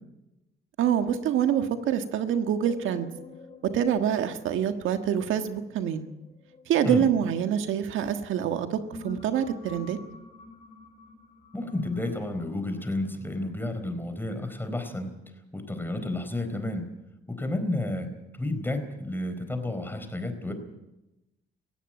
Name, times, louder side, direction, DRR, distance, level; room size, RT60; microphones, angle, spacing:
voice 1, 0.8-3.1 3.6-6.1 6.7-10.0, right 9 dB, 85° right, 7 dB, 1.5 m, -26 dB
sound 1, 2.6-7.9 8.5-13.5, left 3 dB, 35° left, 6.2 m, -48 dB
voice 2, 11.5-15.1 15.5-16.9 17.3-18.1 18.4-20.5, left 2 dB, 10° left, 7 dB, 4.3 m, -31 dB
18.0 x 16.0 x 9.0 m, 0.97 s
cardioid pair, 90°, 20 cm